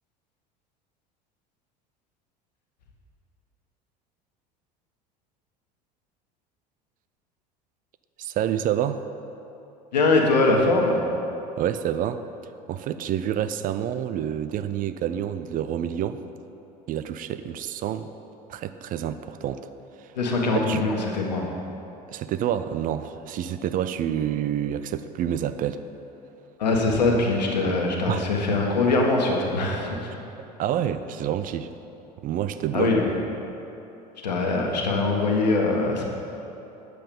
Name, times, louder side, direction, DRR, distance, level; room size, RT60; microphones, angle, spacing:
voice 1, 8.2-9.0 11.6-12.2 12.7-16.2 16.9-18.1 18.5-19.7 20.0-20.1 20.6-20.8 22.1-25.8 27.6-27.8 28.1-28.2 30.6-31.7 32.2-32.9, right 10 dB, 40° right, 11 dB, 0.5 m, -28 dB
voice 2, 9.9-11.0 20.1-21.5 26.6-30.1 32.7-33.1 34.2-36.1, left 3 dB, 80° left, 0 dB, 1.4 m, -22 dB
9.2 x 7.6 x 5.3 m, 3.0 s
hypercardioid pair, 75°, 21 cm